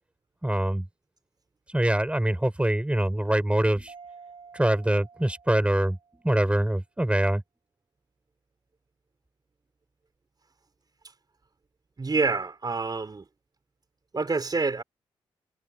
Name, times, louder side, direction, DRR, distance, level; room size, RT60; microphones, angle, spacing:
voice 1, 0.4-0.9 1.7-3.9 4.5-7.4, right 1 dB, 10° right, 5.6 m, -24 dB
Mallet percussion, 3.9-6.4, right 5 dB, 60° right, 7.1 m, -50 dB
voice 2, 12.0-13.3 14.1-14.8, right 4 dB, 40° right, 4.3 m, -27 dB
supercardioid pair, 50°, 11 cm